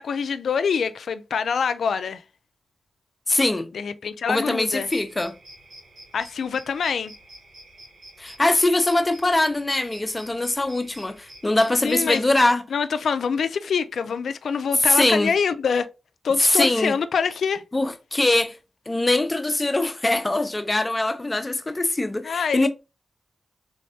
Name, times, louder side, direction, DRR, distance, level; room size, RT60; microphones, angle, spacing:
voice 1, 0.0-2.2 3.7-4.9 6.1-7.1 11.8-12.2 12.7-15.9 16.2-17.6 22.2-22.7, left 6 dB, 80° left, 0.4 m, -25 dB
voice 2, 3.3-3.7 4.3-5.3 8.2-12.6 14.8-15.3 16.4-17.0 17.7-18.6 18.9-22.7, left 2 dB, 25° left, 0.6 m, -22 dB
sound 1, 4.7-12.5, right 1 dB, 90° right, 2.3 m, -48 dB
3.4 x 3.2 x 2.7 m
cardioid pair, 70°, 0 cm